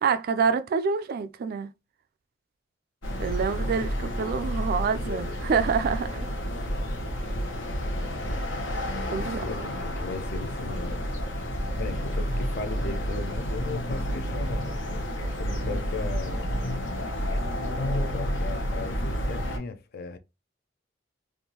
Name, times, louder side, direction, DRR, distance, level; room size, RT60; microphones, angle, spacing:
voice 1, 0.0-1.7 3.2-6.3 9.1-9.4, right 6 dB, 50° right, 0.3 m, -27 dB
sound 1, 3.0-19.6, equal, 80° left, 1.0 m, -30 dB
voice 2, 9.1-11.1 11.8-14.7 15.2-16.5 17.9-20.2, left 4 dB, 55° left, 0.5 m, -37 dB
3.5 x 2.5 x 2.8 m
head